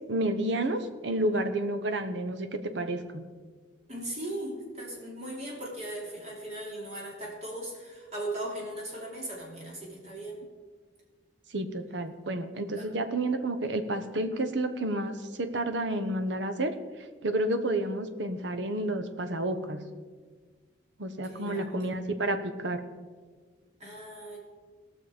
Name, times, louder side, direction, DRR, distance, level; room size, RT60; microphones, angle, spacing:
voice 1, 0.1-3.2 11.5-16.7 17.2-19.8 21.0-22.8, right 1 dB, 70° right, 8 dB, 1.0 m, -30 dB
voice 2, 3.9-10.4 12.8-12.9 21.2-22.1 23.8-24.4, right 1 dB, 35° right, -3 dB, 3.1 m, -38 dB
18.5 x 6.4 x 5.0 m, 1.5 s
head